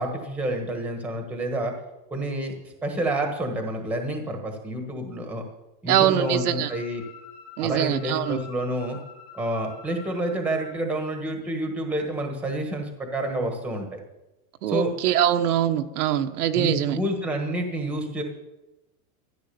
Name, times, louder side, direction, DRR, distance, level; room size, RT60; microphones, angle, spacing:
voice 1, 0.0-1.7 2.1-5.4 5.8-7.0 7.6-9.0 9.3-14.0 14.7-14.9 16.5-18.2, right 1 dB, 5° right, 4 dB, 1.3 m, -29 dB
sound 1, 5.9-10.7, left 6 dB, 90° left, 3.8 m, -47 dB
voice 2, 5.9-6.7 7.6-8.4 14.6-17.0, right 10 dB, 75° right, 7 dB, 1.2 m, -23 dB
14.0 x 10.5 x 6.9 m, 0.96 s
supercardioid pair, 180°, 45 cm